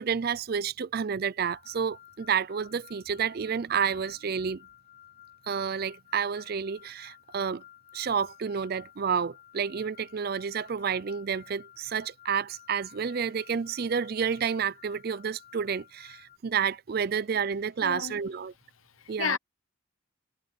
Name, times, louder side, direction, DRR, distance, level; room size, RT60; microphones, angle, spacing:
voice 1, 0.0-4.6 5.5-7.6 7.9-18.5 19.1-19.4, right 6 dB, 50° right, 0.4 m, -30 dB
sound 1, 1.4-16.4, left 12 dB, 30° left, 1.1 m, -54 dB
voice 2, 17.8-18.2 19.0-19.4, left 7 dB, 85° left, 0.8 m, -32 dB
head